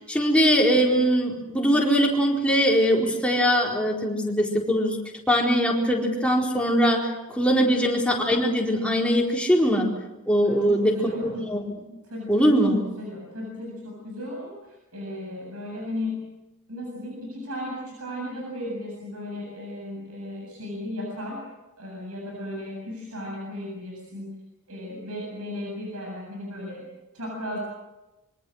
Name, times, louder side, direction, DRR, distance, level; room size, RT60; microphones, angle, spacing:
voice 1, 0.0-5.0 5.3-9.9 10.3-11.0 11.2-11.9 12.3-12.8, equal, 5° left, -1 dB, 4.3 m, -21 dB
voice 2, 7.6-7.9 10.4-11.3 12.1-16.3 16.7-21.4 21.8-24.3 24.7-26.9 27.1-27.6, left 1 dB, 75° right, -1 dB, 7.8 m, -35 dB
26.5 x 24.0 x 6.5 m, 1.0 s
head